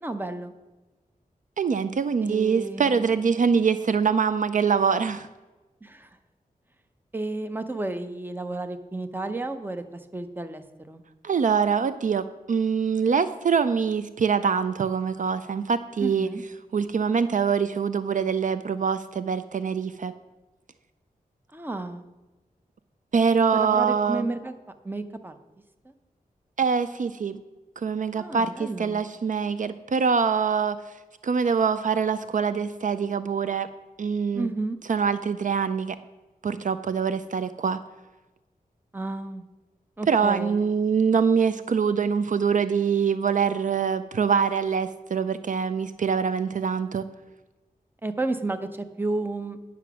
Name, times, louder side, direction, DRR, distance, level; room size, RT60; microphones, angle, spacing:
voice 1, 0.0-0.5 2.2-3.2 5.8-6.1 7.1-9.8 10.1-11.0 16.0-16.4 21.5-22.0 23.5-24.5 24.8-25.3 28.1-29.0 34.3-34.8 38.9-39.4 40.0-40.6 48.0-49.6, right 2 dB, 15° right, 8 dB, 0.7 m, -32 dB
voice 2, 1.6-5.3 11.2-16.3 16.7-20.1 23.1-24.3 26.6-27.4 27.8-30.8 31.2-33.7 34.0-34.5 34.9-36.0 36.4-37.8 40.1-47.0, right 6 dB, 60° right, 12 dB, 0.4 m, -24 dB
10.0 x 5.9 x 6.0 m, 1.1 s
wide cardioid pair, 115°, 15 cm